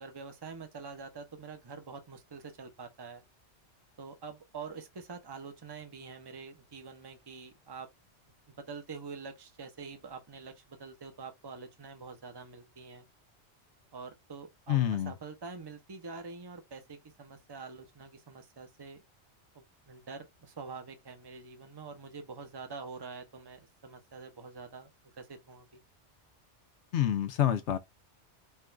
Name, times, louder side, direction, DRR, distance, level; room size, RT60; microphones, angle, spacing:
voice 1, 0.0-3.2 4.0-7.9 8.5-13.1 13.9-19.0 19.5-25.8, right 4 dB, 25° right, 0.7 m, -46 dB
voice 2, 14.7-15.1 26.9-27.8, left 11 dB, 80° left, 0.9 m, -27 dB
4.6 x 2.4 x 3.2 m
omnidirectional pair, 1.2 m